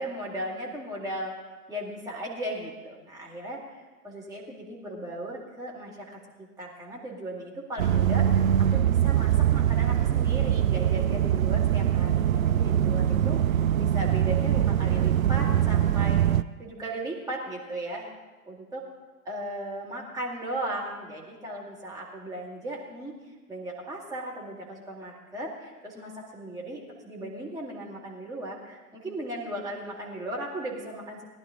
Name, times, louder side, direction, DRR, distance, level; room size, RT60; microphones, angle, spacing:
voice 1, 0.0-1.3 1.7-16.2 16.6-18.1 18.4-18.8 19.2-23.1 23.5-31.3, right 1 dB, 10° right, -4 dB, 2.3 m, -37 dB
sound 1, 7.8-16.4, right 10 dB, 60° right, 0.5 m, -23 dB
19.0 x 11.0 x 3.8 m, 1.2 s
figure-of-eight pair, 115°, 46 cm